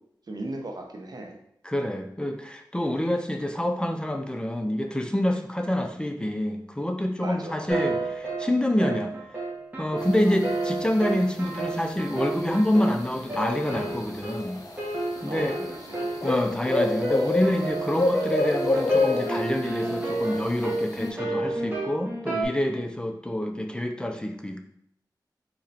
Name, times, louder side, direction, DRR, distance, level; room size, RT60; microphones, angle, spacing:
voice 1, 0.3-1.4 7.2-7.7 15.2-16.1, right 2 dB, 60° right, 3 dB, 0.8 m, -37 dB
voice 2, 1.6-9.1 9.8-14.6 15.2-15.6 16.2-24.6, left 1 dB, 10° left, 4 dB, 0.5 m, -27 dB
sound 1, 7.7-22.4, right 2 dB, 20° right, 1.4 m, -31 dB
sound 2, 10.0-21.1, left 3 dB, 50° left, 1.0 m, -29 dB
4.2 x 2.9 x 4.1 m, 0.73 s
wide cardioid pair, 70°, 8 cm